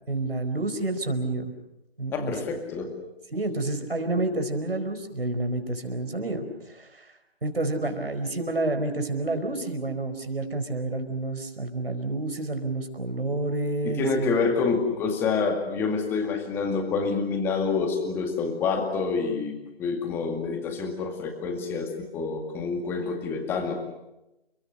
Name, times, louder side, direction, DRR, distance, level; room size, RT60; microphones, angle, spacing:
voice 1, 0.1-1.4 2.0-2.6 3.3-7.1 7.4-14.4, right 2 dB, 70° right, 7 dB, 4.9 m, -29 dB
voice 2, 2.1-2.9 13.8-23.8, left 4 dB, 5° left, 4 dB, 2.1 m, -27 dB
30.0 x 23.5 x 6.7 m, 0.94 s
figure-of-eight pair, 150°, 30 cm